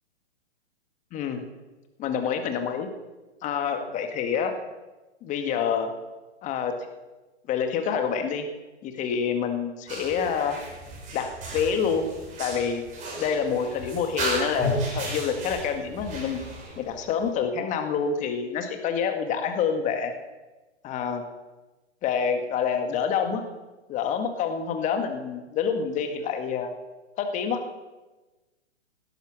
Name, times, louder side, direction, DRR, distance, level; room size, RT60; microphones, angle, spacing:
voice 1, 1.1-1.4 2.0-2.9 3.4-4.5 5.2-5.9 6.4-6.7 7.5-8.5 8.8-10.6 11.1-12.1 12.4-12.8 13.2-16.4 16.8-20.1 20.8-21.2 22.0-23.4 23.9-26.7 27.2-27.6, left 7 dB, 20° left, 6 dB, 1.8 m, -27 dB
sound 1, 9.9-17.3, right 1 dB, 20° right, 4.8 m, -34 dB
17.5 x 12.0 x 6.1 m, 1.2 s
figure-of-eight pair, 120°, 35 cm